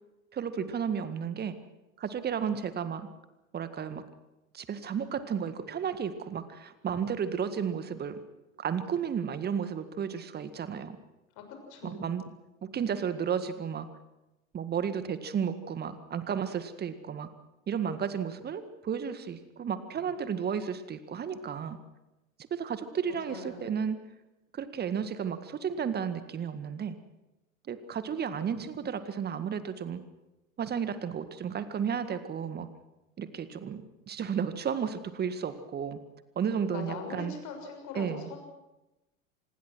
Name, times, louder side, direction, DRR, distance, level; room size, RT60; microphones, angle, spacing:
voice 1, 0.3-1.5 2.0-3.1 3.5-4.0 4.5-8.2 8.6-11.0 11.8-12.2 12.6-13.9 14.5-17.3 17.7-21.8 22.5-24.0 24.5-27.0 27.7-30.0 30.6-32.7 33.2-36.0 36.4-37.3 37.9-38.3, right 7 dB, 25° right, 12 dB, 1.9 m, -33 dB
voice 2, 11.7-12.1 23.1-23.7 36.6-38.4, left 4 dB, 45° left, 4 dB, 6.5 m, -41 dB
26.0 x 20.5 x 6.3 m, 0.98 s
figure-of-eight pair, 80°, 40 cm